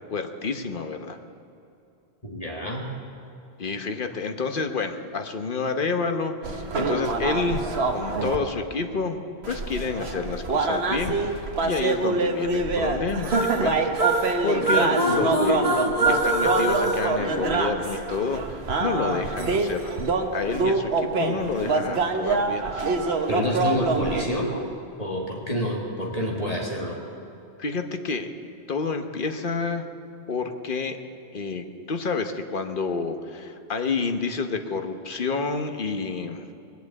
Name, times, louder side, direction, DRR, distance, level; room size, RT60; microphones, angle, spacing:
voice 1, 0.1-1.2 3.6-7.6 7.9-15.7 16.1-20.0 20.3-22.9 27.6-28.3 28.7-29.8 30.3-31.0 31.3-36.5, left 4 dB, 55° left, 6 dB, 1.2 m, -29 dB
voice 2, 2.2-2.8 15.1-15.2 23.3-24.6 25.0-27.0, equal, 35° left, -2 dB, 1.8 m, -28 dB
sound 1, 6.4-8.4 9.4-24.2, right 3 dB, 75° right, 1.4 m, -26 dB
sound 2, 13.3-18.0, right 2 dB, 35° right, 1.5 m, -25 dB
20.5 x 8.2 x 8.4 m, 2.8 s
omnidirectional pair, 1.1 m